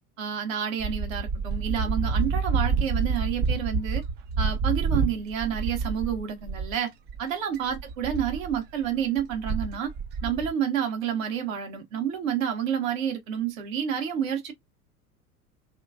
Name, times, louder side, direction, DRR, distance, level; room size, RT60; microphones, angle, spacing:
voice 1, 0.2-4.0 4.4-6.9 7.2-9.9 10.2-14.5, right 8 dB, 60° right, 1.3 m, -29 dB
sound 1, 0.8-6.8 7.1-7.2 7.5-10.5, right 5 dB, 25° right, 0.4 m, -28 dB
2.8 x 2.3 x 2.4 m
figure-of-eight pair, 80°, 44 cm